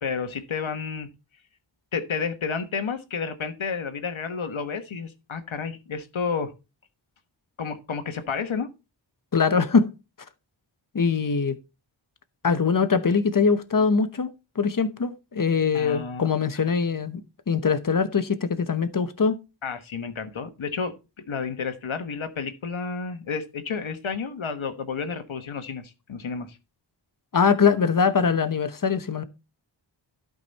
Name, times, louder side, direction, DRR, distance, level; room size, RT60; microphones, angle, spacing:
voice 1, 0.0-1.1 1.9-6.5 7.6-8.7 15.7-16.3 19.6-20.9 21.3-26.6, left 5 dB, 90° left, 1.4 m, -31 dB
voice 2, 9.3-9.9 10.9-11.6 12.4-14.3 14.6-17.2 17.5-19.4 27.3-29.2, left 5 dB, 45° left, 1.0 m, -22 dB
12.0 x 5.2 x 4.1 m
wide cardioid pair, 85°, 46 cm